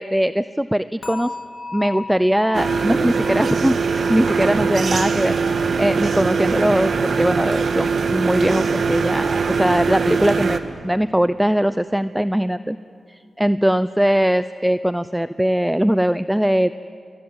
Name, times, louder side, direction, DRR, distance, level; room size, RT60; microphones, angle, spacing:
voice 1, 0.0-1.3 1.7-3.8 4.1-5.4 5.8-12.8 13.1-16.7, equal, 5° right, 14 dB, 0.6 m, -20 dB
sound 1, 1.0-8.1 8.4-8.8 9.3-9.4, left 3 dB, 55° left, 2.5 m, -38 dB
sound 2, 2.5-10.6, right 5 dB, 70° right, 1.5 m, -21 dB
26.0 x 23.5 x 8.8 m, 2.4 s
cardioid pair, 45°, 0 cm